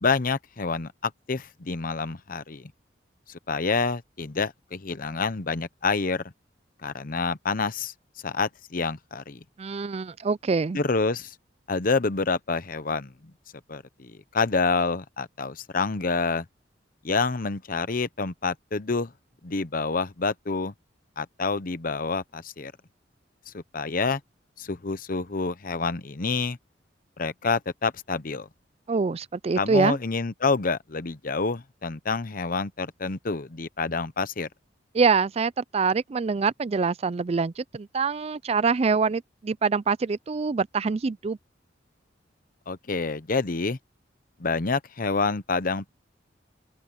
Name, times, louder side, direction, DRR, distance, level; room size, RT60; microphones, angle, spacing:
voice 1, 0.0-2.7 3.3-6.2 6.8-7.9 8.2-9.4 10.7-11.3 11.7-13.3 13.7-16.4 17.0-19.1 19.4-20.7 21.2-22.7 23.5-24.2 24.6-26.6 27.2-28.5 29.6-34.5 42.7-43.8 44.4-45.9, left 4 dB, 50° left, 0.9 m, -28 dB
voice 2, 9.6-10.8 28.9-30.0 34.9-41.4, right 5 dB, 35° right, 0.4 m, -25 dB
open air
head